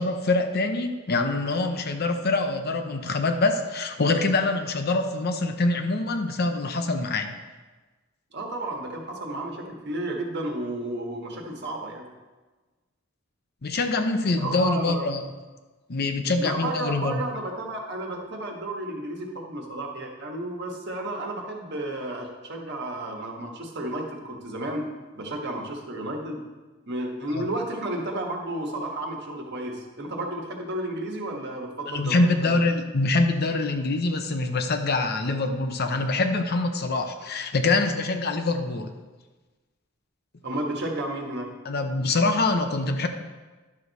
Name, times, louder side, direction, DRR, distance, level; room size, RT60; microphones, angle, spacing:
voice 1, 0.0-7.4 13.6-15.2 15.9-17.2 27.3-27.4 31.9-38.9 41.7-43.1, left 3 dB, 50° left, 6 dB, 0.7 m, -25 dB
voice 2, 8.3-12.0 14.4-15.1 16.4-24.9 25.1-26.4 26.9-32.6 40.4-41.5, right 1 dB, 55° right, 1 dB, 1.4 m, -32 dB
11.0 x 6.4 x 4.1 m, 1.3 s
head